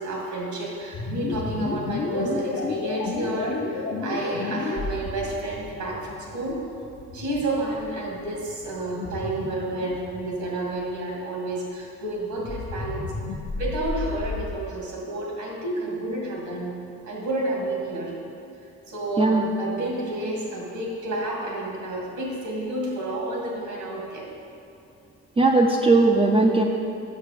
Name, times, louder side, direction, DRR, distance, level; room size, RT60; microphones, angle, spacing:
voice 1, 0.0-6.6 7.1-13.1 13.6-16.7 17.0-18.1 18.9-24.3, right 2 dB, 85° right, -2 dB, 2.2 m, -30 dB
sound 1, 0.9-11.0 12.3-14.5, left 3 dB, 50° left, 1.1 m, -32 dB
voice 2, 25.4-26.6, right 3 dB, 20° right, 0 dB, 0.5 m, -18 dB
6.6 x 5.9 x 6.7 m, 2.7 s
cardioid pair, 90°, 30 cm